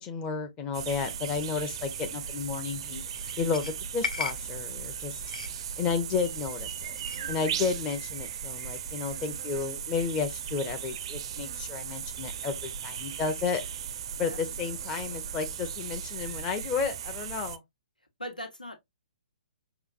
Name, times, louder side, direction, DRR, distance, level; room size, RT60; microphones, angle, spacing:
voice 1, 0.0-3.0 3.4-5.2 5.8-7.0 7.3-13.6 14.2-17.6, left 5 dB, 20° left, 0.6 m, -32 dB
sound 1, 0.7-17.6, right 8 dB, 40° right, 0.4 m, -37 dB
sound 2, 2.1-7.4, left 4 dB, 70° left, 0.6 m, -40 dB
voice 2, 18.2-18.8, equal, 90° left, 1.2 m, -40 dB
5.7 x 2.2 x 2.4 m
figure-of-eight pair, 125°, 4 cm